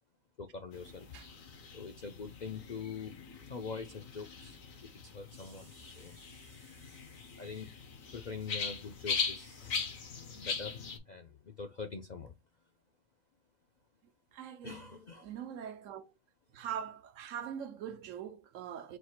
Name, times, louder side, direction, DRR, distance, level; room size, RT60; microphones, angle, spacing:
voice 1, 0.4-1.1 1.7-3.2 3.5-7.8 8.1-10.0 10.3-12.3 14.6-15.3, left 5 dB, 55° left, 0.5 m, -45 dB
sound 1, 0.7-11.0, left 5 dB, 85° left, 1.4 m, -41 dB
voice 2, 14.3-14.9 15.2-16.1 16.5-19.0, right 9 dB, 75° right, 1.0 m, -42 dB
4.3 x 2.4 x 4.3 m
omnidirectional pair, 1.4 m